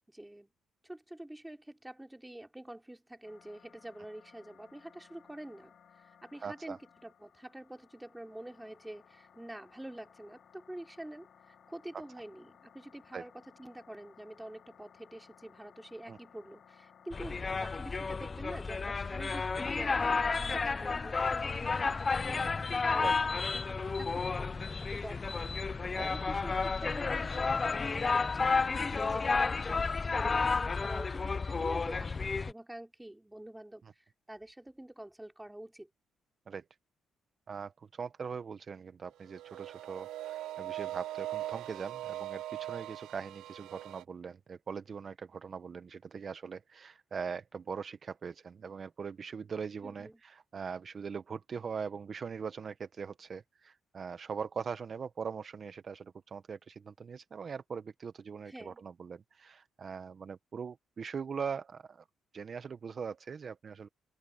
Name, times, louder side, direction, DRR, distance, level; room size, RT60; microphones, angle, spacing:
voice 1, 0.1-0.5 0.8-25.4 25.8-29.8 30.1-35.9 49.8-50.2 58.5-58.8, right 1 dB, 10° right, 3.5 m, -47 dB
sound 1, 3.2-22.5, left 8 dB, 60° left, 4.8 m, -60 dB
voice 2, 6.4-6.8 13.1-13.2 16.1-16.2 23.0-23.1 25.4-25.5 26.0-26.1 36.5-36.6 37.5-62.1 62.3-63.9, right 6 dB, 45° right, 0.8 m, -41 dB
sound 2, 17.1-32.5, left 4 dB, 30° left, 0.5 m, -31 dB
sound 3, 39.3-44.0, right 14 dB, 85° right, 0.3 m, -40 dB
open air
cardioid pair, 90°, 0 cm